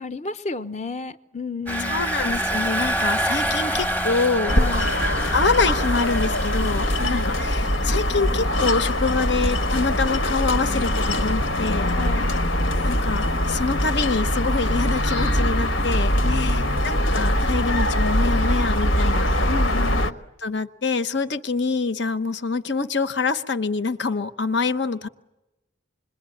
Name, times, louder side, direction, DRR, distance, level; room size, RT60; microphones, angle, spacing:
voice 1, 0.0-2.1 4.6-5.0 7.0-7.3 11.9-12.4 16.2-16.8 19.5-20.2, left 5 dB, 35° left, 0.9 m, -32 dB
Engine, 1.7-7.5, right 1 dB, 10° left, 0.9 m, -27 dB
voice 2, 1.8-4.6 5.1-11.9 12.8-19.3 20.4-25.1, left 4 dB, 65° left, 1.0 m, -26 dB
sound 1, 4.5-20.1, left 1 dB, 90° left, 1.4 m, -22 dB
27.0 x 22.0 x 9.9 m
head